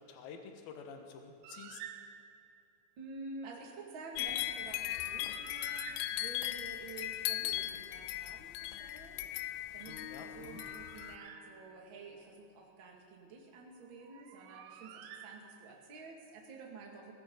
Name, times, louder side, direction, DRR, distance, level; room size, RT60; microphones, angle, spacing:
voice 1, 0.0-1.8 10.0-10.6, left 6 dB, 65° left, 4 dB, 2.8 m, -49 dB
Bird, 1.4-2.6 4.7-6.7 10.2-12.0 14.0-15.9, right 10 dB, 80° right, 2.8 m, -52 dB
voice 2, 3.0-9.3 9.7-17.1, right 3 dB, 40° right, -1 dB, 1.9 m, -50 dB
sound 1, 4.2-11.2, left 14 dB, 85° left, 2.8 m, -38 dB
Acoustic guitar, 9.9-13.1, left 5 dB, 50° left, 6.8 m, -55 dB
21.5 x 16.5 x 3.9 m, 2.6 s
omnidirectional pair, 5.1 m